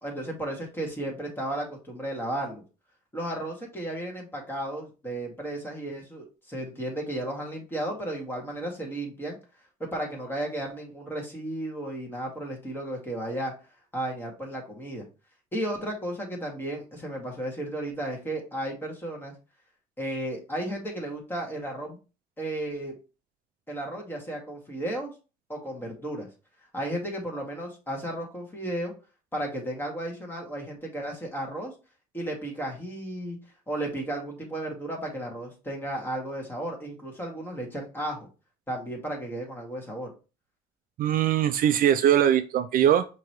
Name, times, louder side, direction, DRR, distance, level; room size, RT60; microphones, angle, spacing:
voice 1, 0.0-2.6 3.1-9.4 9.9-13.5 13.9-15.1 15.5-19.3 20.0-22.0 22.4-22.9 23.7-25.1 25.5-26.3 26.7-28.9 29.3-31.7 32.1-33.4 33.7-38.3 38.7-40.1, right 1 dB, 15° left, 0 dB, 2.0 m, -34 dB
voice 2, 41.0-43.1, right 10 dB, 55° right, 11 dB, 0.4 m, -21 dB
5.7 x 3.0 x 3.1 m, 0.32 s
cardioid pair, 110°, 17 cm